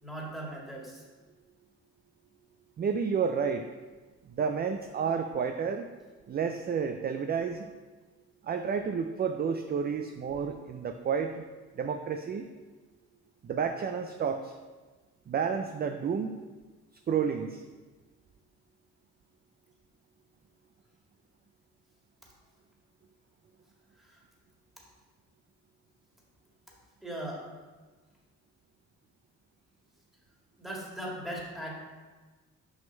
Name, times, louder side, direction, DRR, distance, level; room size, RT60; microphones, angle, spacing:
voice 1, 0.0-1.0 24.0-24.2 27.0-27.5 30.6-31.7, right 1 dB, ahead, -3 dB, 2.0 m, -39 dB
voice 2, 2.8-3.6 4.4-5.9 6.3-7.7 8.4-11.4 11.8-12.5 13.4-14.5 15.3-16.4 17.1-17.6, right 6 dB, 35° right, 6 dB, 0.4 m, -30 dB
6.3 x 5.3 x 4.4 m, 1.3 s
cardioid pair, 90°, 30 cm